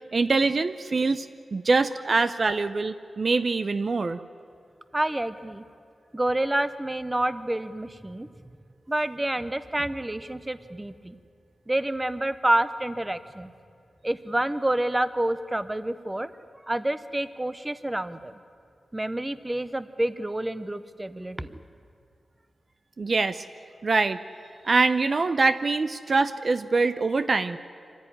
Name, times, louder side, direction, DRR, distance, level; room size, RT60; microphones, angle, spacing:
voice 1, 0.1-4.2 23.0-23.4 23.8-24.2 24.6-27.6, right 3 dB, 40° right, 11 dB, 0.6 m, -24 dB
voice 2, 4.9-5.6 6.1-8.3 8.9-11.2 11.7-13.5 14.0-16.3 16.6-18.3 18.9-21.6, right 1 dB, 15° right, 13 dB, 0.8 m, -28 dB
25.5 x 15.0 x 10.0 m, 2.4 s
wide cardioid pair, 145°, 0 cm